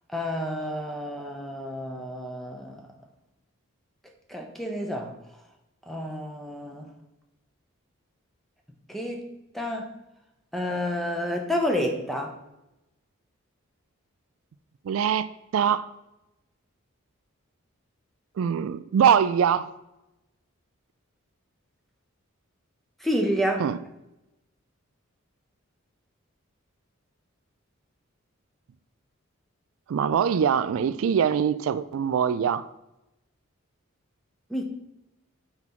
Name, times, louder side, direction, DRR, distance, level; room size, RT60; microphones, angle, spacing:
voice 1, 0.1-2.9 4.3-5.1 5.9-6.9 8.9-9.9 10.5-12.4 23.0-23.7 34.5-34.6, equal, ahead, 0.8 m, -29 dB
voice 2, 14.9-15.9 18.4-19.7 23.6-23.8 29.9-32.6, right 8 dB, 75° right, 0.3 m, -23 dB
6.0 x 4.4 x 5.7 m
head